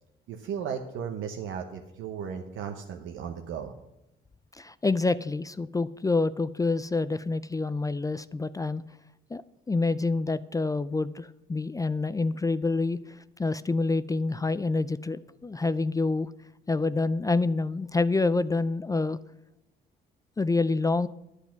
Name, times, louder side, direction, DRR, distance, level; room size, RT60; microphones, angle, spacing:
voice 1, 0.3-3.7, right 7 dB, 85° right, 4 dB, 0.9 m, -35 dB
voice 2, 4.6-8.8 9.3-9.4 9.7-13.0 13.4-16.3 16.7-19.2 20.4-21.1, left 3 dB, 15° left, 15 dB, 0.4 m, -27 dB
11.0 x 8.2 x 5.9 m, 0.90 s
cardioid pair, 90°, 20 cm